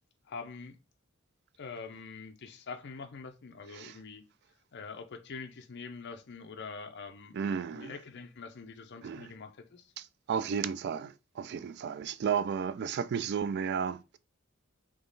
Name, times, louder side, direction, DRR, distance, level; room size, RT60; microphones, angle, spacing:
voice 1, 0.3-0.8 1.6-4.2 4.7-7.4 7.7-9.9, left 4 dB, 55° left, 0.6 m, -44 dB
voice 2, 7.3-7.9 9.0-9.3 10.0-14.2, right 7 dB, 55° right, 0.3 m, -33 dB
3.7 x 3.0 x 3.9 m
head